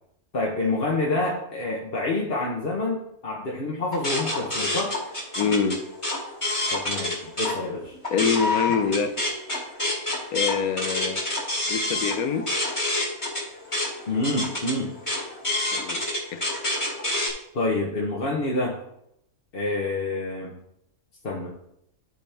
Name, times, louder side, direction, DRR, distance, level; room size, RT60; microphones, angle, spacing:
voice 1, 0.3-4.9 6.7-7.9 14.1-14.9 17.5-18.8 19.5-20.5 21.2-21.5, left 2 dB, 45° left, -3 dB, 1.2 m, -27 dB
sound 1, 3.9-7.5 7.9-17.3, left 2 dB, 20° left, 1.7 m, -28 dB
voice 2, 5.4-5.8 8.1-9.1 10.3-11.2 11.7-12.5 15.7-16.0 16.3-16.5, left 6 dB, 80° left, 8 dB, 1.2 m, -25 dB
12.5 x 4.3 x 3.4 m, 0.77 s
omnidirectional pair, 1.5 m